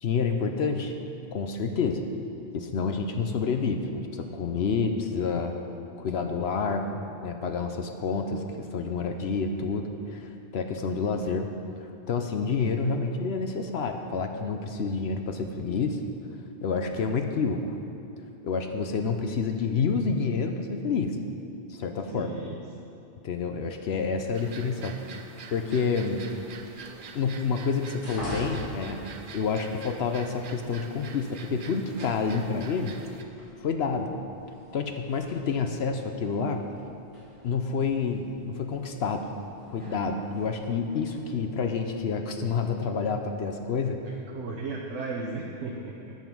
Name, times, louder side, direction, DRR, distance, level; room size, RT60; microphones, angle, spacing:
voice 1, 0.0-0.9 1.3-2.0 2.5-5.6 6.0-11.5 11.8-16.0 16.6-17.8 18.4-21.2 21.7-22.3 23.2-25.2 25.5-26.3 27.1-29.0 29.3-32.9 33.6-34.1 34.7-36.6 37.4-39.3 39.7-44.0, left 5 dB, 65° left, 5 dB, 0.9 m, -28 dB
voice 2, 22.1-22.6 44.3-46.2, right 3 dB, 80° right, -1 dB, 1.1 m, -35 dB
sound 1, 24.3-33.2, right 5 dB, 55° right, 0.7 m, -46 dB
sound 2, 25.5-41.3, left 1 dB, 90° left, 2.9 m, -46 dB
9.5 x 7.1 x 6.0 m, 2.7 s
omnidirectional pair, 1.2 m